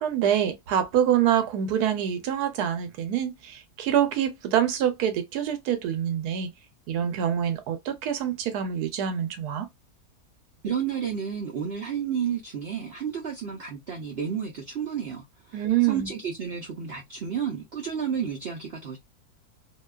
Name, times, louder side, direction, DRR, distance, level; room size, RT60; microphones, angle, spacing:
voice 1, 0.0-6.5 6.9-9.7 15.5-16.1, right 10 dB, 80° right, 1.1 m, -25 dB
voice 2, 10.6-19.0, right 7 dB, 65° right, 0.6 m, -31 dB
2.7 x 2.2 x 2.3 m
omnidirectional pair, 1.6 m